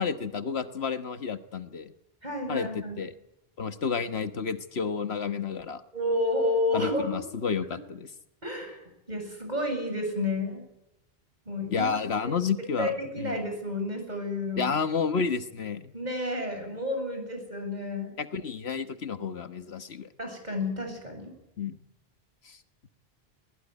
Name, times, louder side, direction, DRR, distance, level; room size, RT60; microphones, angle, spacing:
voice 1, 0.0-1.9 2.5-3.1 3.6-5.8 6.7-8.1 11.7-13.4 14.6-15.9 18.2-20.1 21.6-21.8 22.5-22.6, left 5 dB, 85° left, 10 dB, 1.6 m, -31 dB
voice 2, 2.2-3.0 5.9-7.1 8.4-10.6 11.5-11.9 12.8-14.7 15.9-18.1 20.2-21.3, left 1 dB, 45° right, 4 dB, 7.7 m, -30 dB
21.5 x 20.5 x 9.8 m, 0.87 s
omnidirectional pair, 1.0 m